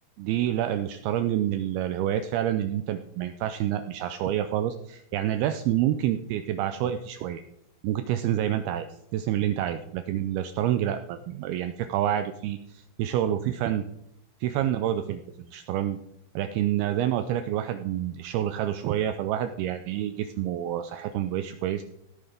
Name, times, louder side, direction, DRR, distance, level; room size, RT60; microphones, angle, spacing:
voice 1, 0.2-7.4 7.8-8.9 9.1-13.8 14.4-15.2 15.5-16.0 16.4-21.8, right 11 dB, 85° right, 9 dB, 2.2 m, -28 dB
16.5 x 9.3 x 3.4 m, 0.80 s
omnidirectional pair, 4.9 m